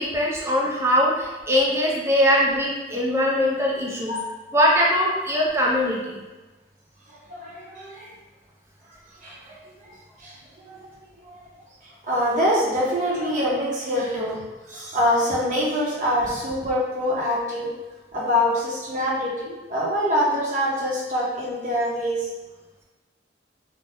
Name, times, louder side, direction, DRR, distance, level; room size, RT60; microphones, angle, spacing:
voice 1, 0.0-4.2 4.5-6.2, equal, 15° right, -4 dB, 0.5 m, -21 dB
voice 2, 4.1-4.4 7.1-8.1 9.2-9.9 10.2-10.4 10.6-11.5 11.8-14.4 14.7-17.7 18.1-22.3, equal, 45° right, -5 dB, 0.8 m, -25 dB
2.6 x 2.1 x 3.3 m, 1.2 s
head